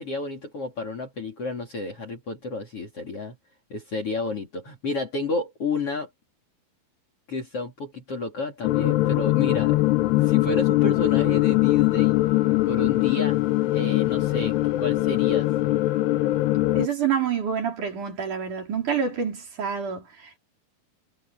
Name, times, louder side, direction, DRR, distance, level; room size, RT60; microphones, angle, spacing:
voice 1, 0.0-3.4 3.7-6.1 7.3-9.8 10.2-12.2 12.6-13.4 13.7-15.5, left 3 dB, 35° left, 3.6 m, -31 dB
sound 1, 8.6-16.9, left 18 dB, 75° left, 2.8 m, -22 dB
voice 2, 16.7-20.4, right 7 dB, 45° right, 5.4 m, -27 dB
omnidirectional pair, 5.2 m